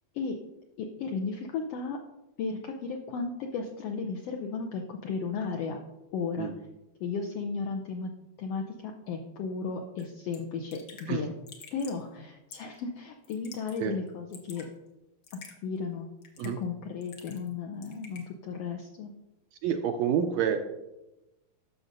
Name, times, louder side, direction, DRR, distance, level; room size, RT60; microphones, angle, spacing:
voice 1, 0.8-2.0 2.4-5.8 6.1-6.5 7.0-8.1 8.4-11.3 11.7-14.7 15.6-16.1 16.4-19.1, left 5 dB, 80° left, 2 dB, 1.4 m, -34 dB
Raindrop / Drip, 10.0-10.1 10.3-10.4 10.7-11.1 11.5-12.0 12.5-12.8 13.2-13.8 14.1-14.7 15.2-15.6 16.2-16.6 17.0-17.5 17.8-18.3, left 5 dB, 65° left, 1.1 m, -48 dB
voice 2, 19.6-20.6, right 8 dB, 80° right, 6 dB, 1.6 m, -27 dB
12.0 x 6.4 x 2.6 m, 0.97 s
omnidirectional pair, 3.4 m